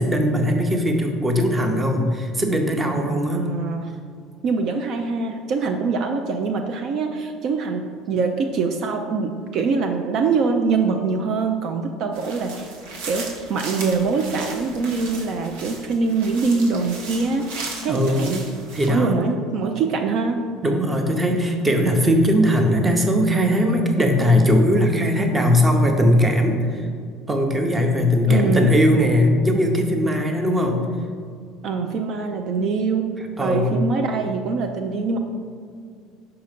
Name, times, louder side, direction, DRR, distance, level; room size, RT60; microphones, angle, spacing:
voice 1, 0.0-3.5 17.9-18.3 18.7-19.2 20.6-26.9 27.3-30.8 33.4-33.8, equal, 15° right, 3 dB, 0.7 m, -19 dB
voice 2, 3.3-4.0 4.4-12.7 13.0-17.5 17.8-18.5 18.9-20.4 28.3-28.7 31.6-33.1 33.4-35.2, right 4 dB, 50° right, 4 dB, 0.4 m, -23 dB
sound 1, 12.1-18.9, right 3 dB, 90° right, 1.1 m, -36 dB
5.7 x 3.9 x 5.2 m, 2.2 s
cardioid pair, 140°, 0 cm